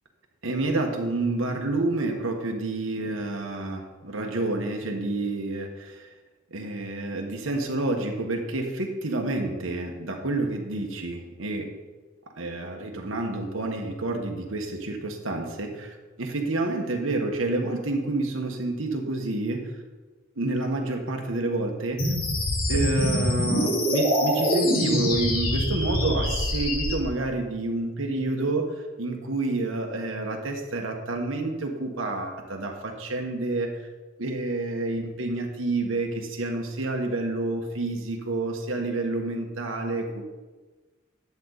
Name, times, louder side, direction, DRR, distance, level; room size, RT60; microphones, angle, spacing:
voice 1, 0.4-6.1 6.5-11.7 12.4-19.7 20.4-22.1 22.7-33.7 34.2-40.2, right 2 dB, 80° right, 2 dB, 1.4 m, -29 dB
sound 1, 22.0-26.9, left 1 dB, 70° left, 3.6 m, -25 dB
11.0 x 8.1 x 4.1 m, 1.3 s
head